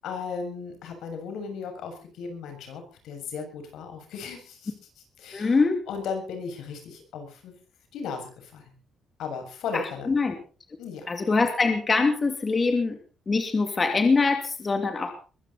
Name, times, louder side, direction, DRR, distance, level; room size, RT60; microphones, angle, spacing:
voice 1, 0.0-4.7 5.2-7.5 7.9-8.7 9.2-10.1 10.8-11.1, left 5 dB, 85° left, 5 dB, 6.8 m, -36 dB
voice 2, 5.3-5.8 9.7-10.4 11.1-13.0 13.3-15.1, left 4 dB, 25° left, 6 dB, 2.6 m, -23 dB
22.0 x 15.0 x 4.2 m, 0.38 s
cardioid pair, 145°, 0 cm